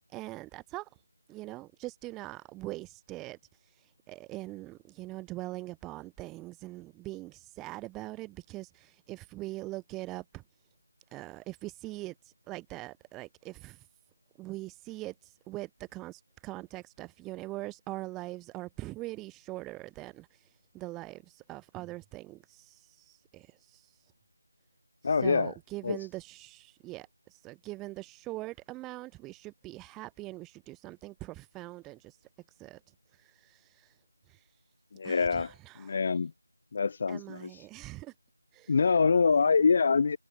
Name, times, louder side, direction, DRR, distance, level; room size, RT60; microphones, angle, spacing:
voice 1, 0.1-0.9 1.3-3.4 4.1-10.4 11.1-12.1 12.5-13.8 14.4-20.3 20.7-23.8 25.2-32.2 32.6-32.8 33.2-33.9 34.3-34.4 35.0-36.0 37.1-38.1 38.5-38.7 39.3-39.5, right 19 dB, 10° right, 5.2 m, -42 dB
voice 2, 25.0-25.5 25.8-26.0 34.9-35.5 35.8-36.3 36.7-37.7 38.7-40.2, left 5 dB, 35° left, 0.9 m, -25 dB
figure-of-eight pair, 170°, 0 cm